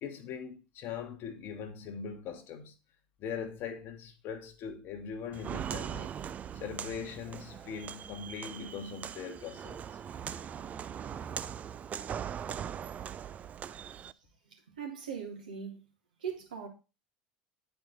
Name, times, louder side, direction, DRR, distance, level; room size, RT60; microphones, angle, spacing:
voice 1, 0.0-2.7 3.2-6.2 6.5-9.8, left 6 dB, 50° left, 1.2 m, -41 dB
Walk footsteps, 5.3-14.1, right 8 dB, 35° right, 0.4 m, -40 dB
voice 2, 14.7-15.8 16.2-16.7, right 7 dB, 80° right, 2.2 m, -39 dB
9.1 x 4.6 x 4.0 m
hypercardioid pair, 75°, 5 cm